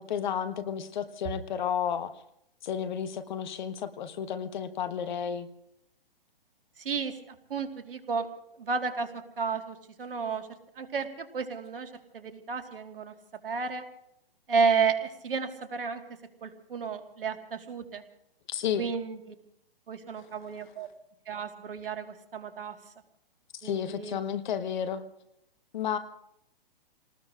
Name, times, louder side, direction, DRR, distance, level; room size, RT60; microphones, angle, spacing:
voice 1, 0.0-2.1 2.6-5.5 18.5-18.9 20.2-20.3 23.6-25.0 25.7-26.0, left 8 dB, 50° left, 11 dB, 1.3 m, -32 dB
voice 2, 6.8-7.1 7.5-8.3 8.6-9.1 9.4-10.5 10.8-13.1 13.4-13.8 14.5-16.0 16.4-18.0 18.8-19.2 19.9-20.9 21.3-22.8 23.6-24.2, right 5 dB, 70° right, 7 dB, 1.8 m, -32 dB
29.5 x 19.0 x 2.5 m, 0.76 s
figure-of-eight pair, 125°, 29 cm